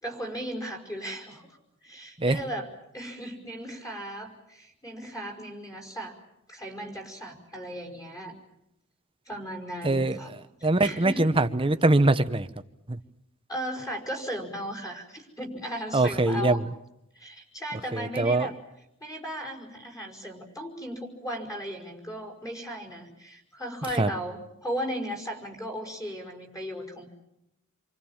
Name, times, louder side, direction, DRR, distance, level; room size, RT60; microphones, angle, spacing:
voice 1, 0.0-2.7 2.9-6.2 6.5-8.3 9.3-10.3 10.8-11.3 13.5-16.6 17.2-18.6 19.0-27.1, equal, 15° left, 0 dB, 5.4 m, -36 dB
voice 2, 9.8-12.5 12.9-13.0 15.9-16.7 17.9-18.5 24.0-24.1, right 2 dB, 25° right, 10 dB, 1.0 m, -23 dB
29.0 x 24.5 x 7.3 m, 0.84 s
head